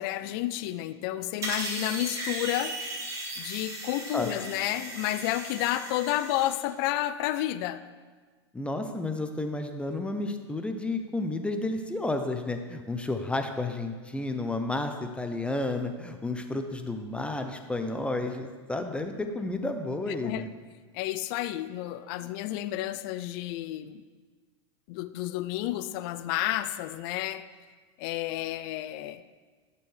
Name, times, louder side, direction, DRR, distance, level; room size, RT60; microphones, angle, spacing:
voice 1, 0.0-2.8 3.4-7.8 20.1-20.5 20.9-24.0 24.9-27.4 28.0-29.2, left 14 dB, 55° left, 13 dB, 0.5 m, -31 dB
sound 1, 1.4-6.6, right 2 dB, 25° right, 2.8 m, -37 dB
voice 2, 8.5-20.5, left 2 dB, 5° left, 5 dB, 0.7 m, -31 dB
14.0 x 6.8 x 3.4 m, 1.4 s
hypercardioid pair, 110°, 15 cm